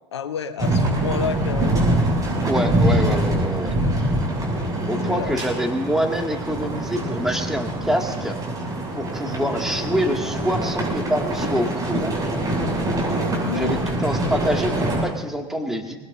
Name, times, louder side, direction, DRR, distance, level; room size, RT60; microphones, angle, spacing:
voice 1, 0.1-1.8 4.7-5.3 13.4-13.9, left 7 dB, 80° left, 11 dB, 0.8 m, -30 dB
sound 1, 0.6-15.0, right 1 dB, 25° right, 7.2 m, -24 dB
voice 2, 2.5-3.7 4.9-8.4 8.9-12.1 13.5-16.0, equal, 5° right, 2 dB, 2.3 m, -26 dB
24.0 x 20.0 x 2.7 m, 1.1 s
figure-of-eight pair, 70°, 14 cm